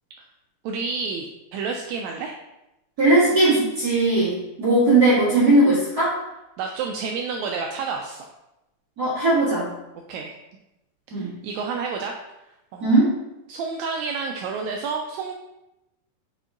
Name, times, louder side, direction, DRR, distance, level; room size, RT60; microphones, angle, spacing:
voice 1, 0.6-1.3 1.5-2.3 6.6-8.3 10.1-10.3 11.1-12.1 12.7-13.0 13.5-15.3, right 5 dB, 80° right, 1 dB, 1.7 m, -29 dB
voice 2, 3.0-6.2 9.0-9.7 11.1-11.3 12.8-13.1, right 2 dB, 30° right, -10 dB, 2.3 m, -18 dB
5.5 x 5.1 x 3.7 m, 0.92 s
omnidirectional pair, 3.7 m